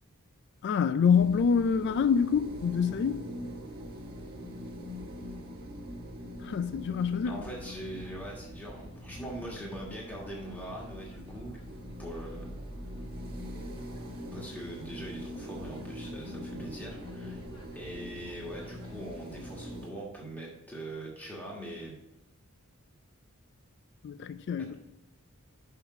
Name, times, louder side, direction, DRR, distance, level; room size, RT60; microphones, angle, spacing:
voice 1, 0.6-3.2 6.4-7.4 24.0-24.7, left 6 dB, 50° left, 0.3 m, -26 dB
sound 1, 1.1-19.9, equal, 45° right, 1.3 m, -43 dB
sound 2, 7.2-19.2, equal, 25° left, 1.1 m, -50 dB
voice 2, 7.2-11.6 12.0-12.5 14.3-17.4 17.7-22.0 24.6-24.7, right 1 dB, 10° left, 1.4 m, -42 dB
5.8 x 5.8 x 5.4 m
head